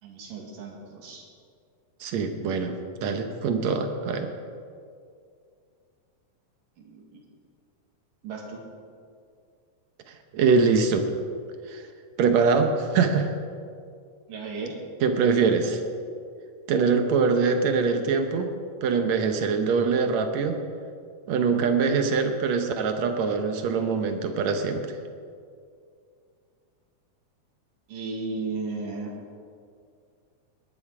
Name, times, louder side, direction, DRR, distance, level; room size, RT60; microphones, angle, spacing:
voice 1, 0.0-1.2 6.9-7.2 8.2-8.6 14.3-14.8 27.9-29.1, right 3 dB, 85° right, -1 dB, 3.7 m, -35 dB
voice 2, 2.0-4.3 10.3-11.1 11.7-11.8 12.2-13.4 15.0-15.8 16.7-18.5 18.8-20.6 21.3-24.8, right 5 dB, 70° right, 6 dB, 2.0 m, -23 dB
20.0 x 10.5 x 4.8 m, 2.3 s
omnidirectional pair, 3.7 m